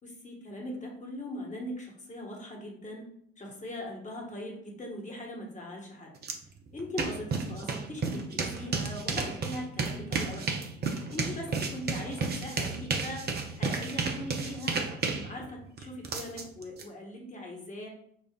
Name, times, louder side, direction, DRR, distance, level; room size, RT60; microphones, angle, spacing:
voice 1, 0.0-3.0 3.4-6.1 6.7-10.7 11.1-13.2 13.6-17.9, left 1 dB, 20° left, 0 dB, 1.2 m, -40 dB
sound 1, 6.2-6.3 6.7-16.8, right 4 dB, 25° right, 0.6 m, -32 dB
6.6 x 2.4 x 2.4 m, 0.67 s
figure-of-eight pair, 60°, 39 cm